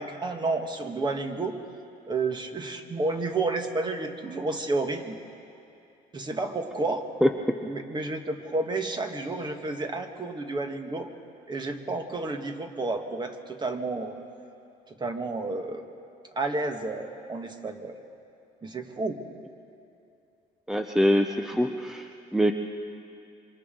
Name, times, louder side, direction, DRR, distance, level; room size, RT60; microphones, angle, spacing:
voice 1, 0.0-1.5 2.1-5.2 6.1-7.0 7.6-11.1 11.5-14.1 15.0-15.8 16.3-17.9 18.6-19.2, right 3 dB, 25° right, 5 dB, 1.6 m, -31 dB
voice 2, 20.7-22.0 22.3-22.5, equal, 5° right, 5 dB, 0.7 m, -23 dB
27.0 x 25.0 x 3.8 m, 2.7 s
cardioid pair, 110°, 17 cm